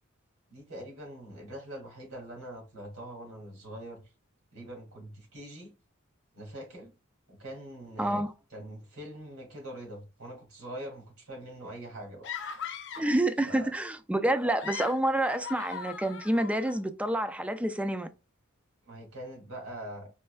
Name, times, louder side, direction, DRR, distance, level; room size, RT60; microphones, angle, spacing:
voice 1, 0.5-4.0 4.5-5.7 6.3-6.9 7.3-8.2 8.5-12.3 13.4-13.7 18.8-20.1, right 1 dB, 75° right, 2.4 m, -43 dB
voice 2, 8.0-8.3 13.0-18.1, right 1 dB, 5° right, 0.3 m, -28 dB
sound 1, 12.2-13.2 14.4-16.8, left 7 dB, 60° left, 0.5 m, -40 dB
4.3 x 3.2 x 2.3 m
head